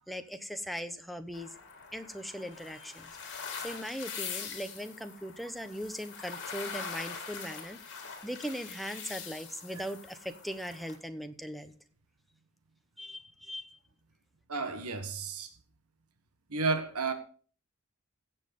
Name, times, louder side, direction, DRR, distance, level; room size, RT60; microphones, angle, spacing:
voice 1, 0.1-1.5 1.9-11.7 13.0-13.8, equal, ahead, 1.0 m, -40 dB
sound 1, 1.3-11.0, left 6 dB, 55° left, 3.4 m, -43 dB
voice 2, 14.5-15.5 16.5-17.1, right 4 dB, 85° right, 1.5 m, -32 dB
16.0 x 7.6 x 5.4 m
head